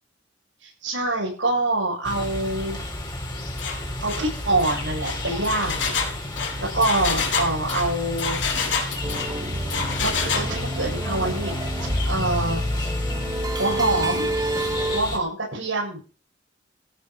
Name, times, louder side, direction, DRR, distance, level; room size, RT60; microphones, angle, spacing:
voice 1, 0.6-2.8 4.0-5.9 6.6-8.4 10.0-11.5 12.0-12.6 13.6-14.3 14.9-16.0, right 2 dB, 85° right, -6 dB, 7.7 m, -25 dB
sound 1, 2.0-15.2, left 1 dB, 25° left, 3.6 m, -32 dB
Engine, 3.6-3.8 4.1-4.3 4.6-9.3 9.7-10.5, left 5 dB, 80° left, 3.7 m, -27 dB
sound 2, 9.0-15.0, right 1 dB, 20° right, 3.3 m, -28 dB
15.5 x 9.5 x 5.1 m, 0.35 s
head